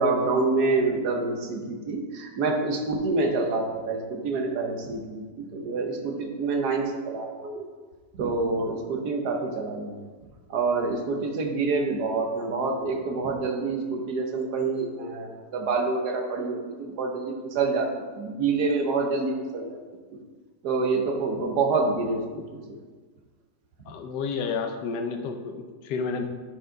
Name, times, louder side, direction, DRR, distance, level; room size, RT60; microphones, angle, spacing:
voice 1, 0.0-7.7 8.1-10.1 10.5-17.9 18.1-19.8 20.6-22.4 22.7-22.8, right 3 dB, 70° right, 3 dB, 1.4 m, -27 dB
voice 2, 23.8-26.2, left 5 dB, 80° left, 6 dB, 1.3 m, -30 dB
9.7 x 4.7 x 3.8 m, 1.4 s
omnidirectional pair, 1.8 m